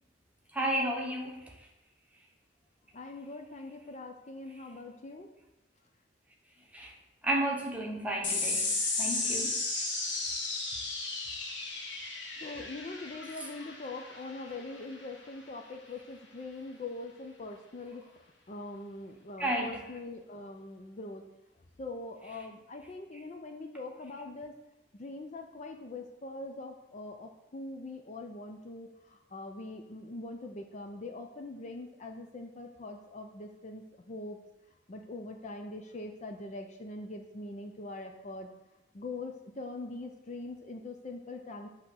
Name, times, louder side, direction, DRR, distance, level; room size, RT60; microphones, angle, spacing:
voice 1, 0.5-1.4 6.7-6.9 7.2-8.7 9.0-9.8 19.4-19.8, right 1 dB, 5° right, -1 dB, 0.9 m, -32 dB
voice 2, 2.9-5.3 12.4-18.1 18.5-21.2 21.8-24.5 24.9-34.4 34.9-38.5 38.9-41.7, left 2 dB, 40° left, 4 dB, 0.5 m, -42 dB
sound 1, 8.2-15.0, left 3 dB, 70° left, 1.4 m, -34 dB
8.1 x 3.0 x 6.3 m, 0.94 s
head